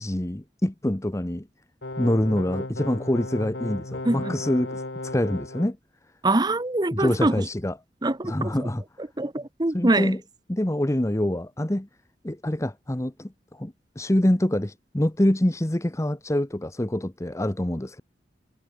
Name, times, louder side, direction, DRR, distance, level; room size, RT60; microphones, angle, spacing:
voice 1, 0.0-1.5 2.0-5.8 6.9-7.7 8.2-8.8 9.7-10.2 10.5-11.9 12.2-18.0, left 1 dB, 15° left, 0.9 m, -25 dB
sound 1, 1.8-5.7, left 2 dB, 90° left, 2.0 m, -35 dB
voice 2, 4.0-4.4 6.2-7.4 8.0-8.7 9.2-10.1, right 2 dB, 25° right, 1.0 m, -24 dB
head